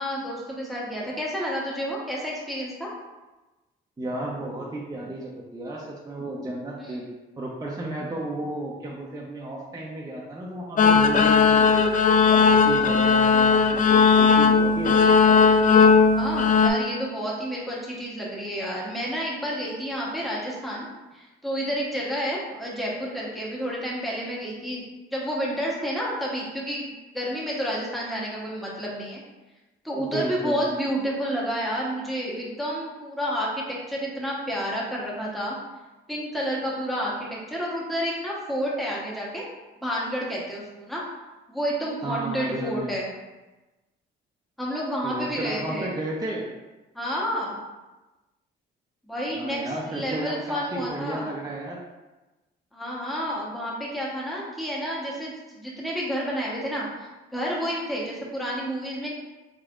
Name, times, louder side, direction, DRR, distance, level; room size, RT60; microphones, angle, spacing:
voice 1, 0.0-2.9 6.8-7.0 12.5-12.9 16.1-20.9 21.1-24.9 25.1-26.9 27.1-29.2 29.8-35.6 36.1-39.4 39.8-41.0 41.5-43.1 44.6-45.9 46.9-47.6 49.0-49.6 49.9-51.3 52.7-59.1, equal, ahead, -5 dB, 1.0 m, -30 dB
voice 2, 4.0-7.1 7.4-11.7 12.3-15.4 30.0-30.7 42.0-42.9 45.0-46.5 49.3-51.8, right 1 dB, 20° right, -4 dB, 0.6 m, -33 dB
sound 1, 10.8-16.7, left 5 dB, 40° left, 0.4 m, -17 dB
4.1 x 3.3 x 2.4 m, 1.1 s
cardioid pair, 90°, 20 cm